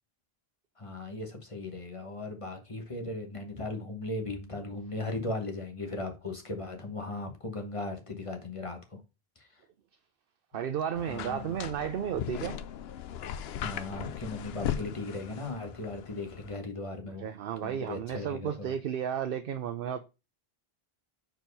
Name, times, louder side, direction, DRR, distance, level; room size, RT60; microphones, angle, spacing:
voice 1, 0.8-9.0 11.1-11.5 13.6-17.3 17.6-18.7, left 2 dB, 30° left, 1.2 m, -37 dB
voice 2, 10.5-12.6 17.2-20.1, right 9 dB, 65° right, 0.7 m, -33 dB
sound 1, 10.9-16.6, left 10 dB, 80° left, 0.8 m, -38 dB
4.6 x 4.5 x 5.3 m
omnidirectional pair, 1.0 m